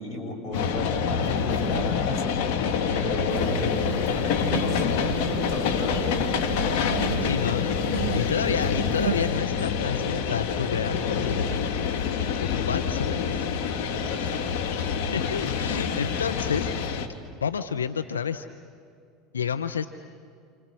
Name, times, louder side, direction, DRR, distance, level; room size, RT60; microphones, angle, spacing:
voice 1, 0.0-6.7 14.1-14.6, left 1 dB, 40° left, 2 dB, 7.6 m, -35 dB
sound 1, 0.5-17.1, left 6 dB, 65° left, 2.2 m, -26 dB
sound 2, 3.3-9.3, right 12 dB, 75° right, 0.7 m, -35 dB
voice 2, 7.2-7.8 8.1-11.6 12.4-13.4 14.2-14.4 15.1-16.7 17.4-18.5 19.3-19.9, left 7 dB, 85° left, 9 dB, 0.7 m, -30 dB
29.5 x 29.0 x 6.3 m, 2.4 s
hypercardioid pair, 80°, 0 cm